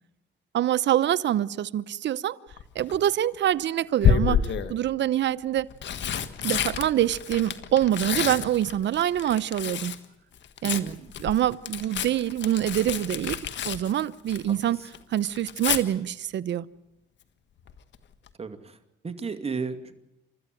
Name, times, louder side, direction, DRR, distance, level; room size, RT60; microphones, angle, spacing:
voice 1, 0.5-2.4 2.7-5.7 6.4-9.9 10.6-10.9 11.2-13.4 13.6-14.8 15.1-16.7, right 11 dB, 65° right, 0.9 m, -25 dB
Tearing, 2.5-3.0 4.0-4.8 5.5-10.0 10.3-14.6 14.9-15.8 17.7-18.0 18.3-18.4, left 7 dB, 65° left, 1.7 m, -28 dB
voice 2, 10.6-11.0 18.4-18.8 19.0-20.0, right 5 dB, 30° right, 2.4 m, -34 dB
30.0 x 13.5 x 9.1 m
cardioid pair, 90°, 20 cm